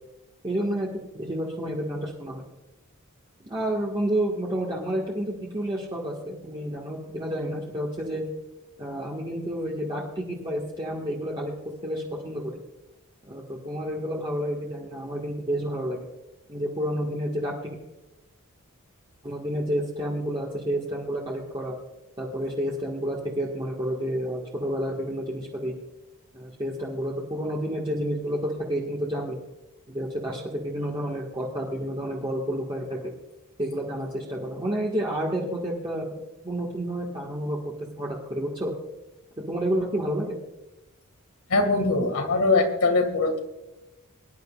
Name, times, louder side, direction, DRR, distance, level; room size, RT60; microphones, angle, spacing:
voice 1, 0.4-0.9 1.1-2.4 3.4-8.2 8.8-11.5 11.8-12.6 13.2-16.1 16.5-17.7 19.2-21.8 22.2-25.7 26.3-29.4 29.9-33.1 33.6-37.6 38.0-38.7 39.5-40.4, equal, 25° right, -4 dB, 1.7 m, -30 dB
voice 2, 41.5-43.4, left 3 dB, 75° left, 5 dB, 2.1 m, -22 dB
23.5 x 11.0 x 2.4 m, 1.0 s
head